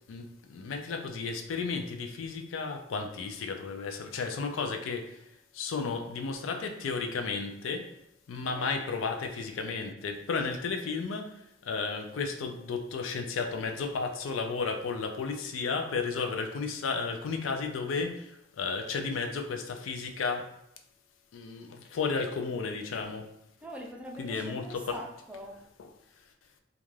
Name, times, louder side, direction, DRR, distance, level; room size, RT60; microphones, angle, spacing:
voice 1, 0.1-5.2 5.5-7.9 8.3-11.3 11.6-20.5 21.3-23.3 24.2-25.0, left 4 dB, 80° left, 4 dB, 0.4 m, -33 dB
voice 2, 23.6-25.6, equal, 5° right, -1 dB, 0.3 m, -43 dB
2.4 x 2.2 x 3.1 m, 0.79 s
head